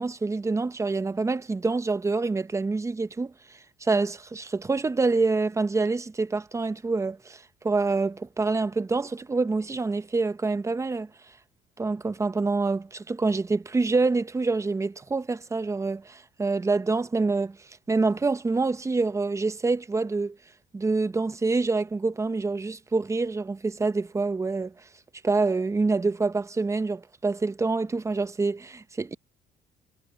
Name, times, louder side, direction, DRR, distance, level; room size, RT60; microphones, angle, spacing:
voice 1, 0.0-3.3 3.8-11.1 11.8-17.6 17.9-20.4 20.7-24.7 25.2-29.1, right 3 dB, 15° right, 0.8 m, -26 dB
cardioid pair, 110°, 17 cm